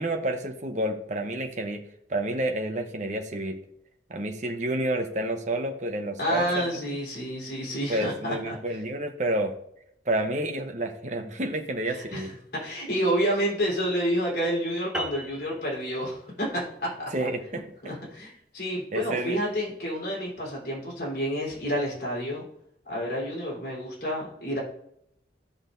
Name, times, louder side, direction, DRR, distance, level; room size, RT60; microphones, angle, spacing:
voice 1, 0.0-1.8 2.1-3.6 4.1-6.6 7.9-9.5 10.1-12.3 17.1-17.9 18.9-19.4, right 1 dB, 40° right, 5 dB, 0.8 m, -29 dB
voice 2, 6.2-8.6 11.9-12.3 12.5-17.1 17.8-22.4 22.9-24.6, equal, 55° left, -4 dB, 3.6 m, -29 dB
sound 1, 14.9-19.7, right 1 dB, 5° right, 0.7 m, -41 dB
13.0 x 6.3 x 2.6 m, 0.73 s
head